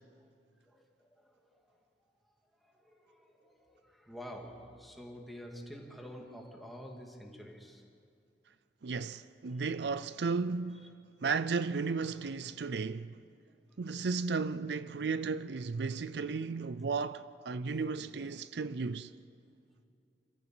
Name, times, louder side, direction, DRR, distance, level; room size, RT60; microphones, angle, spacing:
voice 1, 2.6-7.8, equal, ahead, 2.4 m, -48 dB
voice 2, 8.8-10.9 11.2-13.2 13.8-19.1, right 4 dB, 70° right, 0.5 m, -34 dB
26.5 x 15.0 x 7.8 m
head